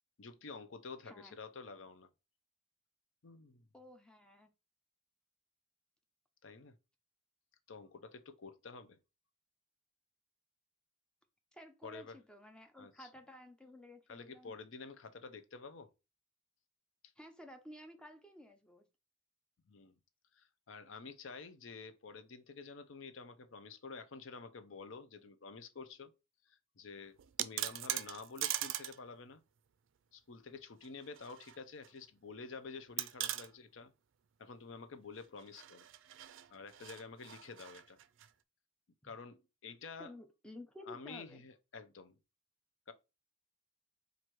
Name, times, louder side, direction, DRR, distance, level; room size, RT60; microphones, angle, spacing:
voice 1, 0.2-2.1 3.2-3.7 6.4-6.8 7.7-9.0 11.8-12.2 12.8-13.1 14.1-15.9 19.7-20.0 20.3-26.1 26.5-29.4 30.1-33.9 34.4-35.9 36.5-38.0 39.0-40.1 40.9-42.1 42.9-43.0, left 4 dB, 80° left, 0.6 m, -50 dB
voice 2, 1.0-1.4 3.7-4.5 11.5-14.6 17.2-18.9 39.0-39.1 40.0-41.4, left 1 dB, 5° left, 0.6 m, -54 dB
sound 1, 27.2-29.0 29.3-29.4 30.8-31.6 31.8-31.9 33.0-33.5 35.4-38.3, right 13 dB, 75° right, 0.4 m, -40 dB
4.4 x 2.6 x 4.5 m
head